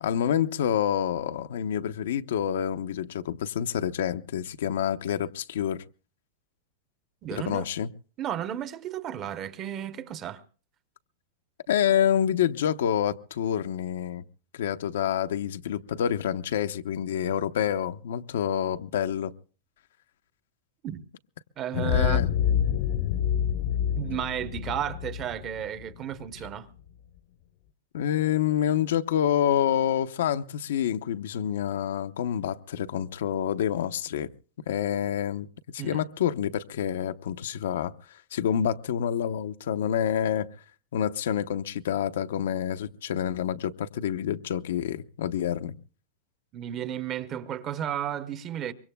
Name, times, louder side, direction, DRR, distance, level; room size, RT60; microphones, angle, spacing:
voice 1, 0.0-5.8 7.3-7.9 11.7-14.2 14.5-19.3 21.8-22.3 27.9-34.3 34.7-35.5 35.7-37.9 38.3-40.5 40.9-45.8, left 9 dB, 85° left, 0.8 m, -27 dB
voice 2, 7.2-7.7 8.2-10.4 20.8-21.0 21.6-22.2 23.9-26.7 35.8-36.0 46.5-48.7, right 10 dB, 25° right, 0.8 m, -33 dB
sound 1, 21.7-26.5, left 9 dB, 50° left, 0.7 m, -27 dB
24.5 x 22.5 x 2.2 m
supercardioid pair, 160°, 0 cm